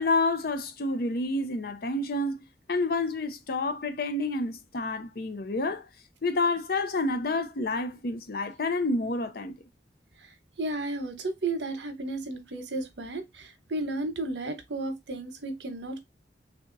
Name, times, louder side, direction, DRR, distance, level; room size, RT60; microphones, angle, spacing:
voice 1, 0.0-2.4 2.7-5.9 6.2-9.6, left 2 dB, 60° left, 0.6 m, -29 dB
voice 2, 10.6-16.0, right 2 dB, 90° right, 0.9 m, -33 dB
3.4 x 2.7 x 3.8 m
head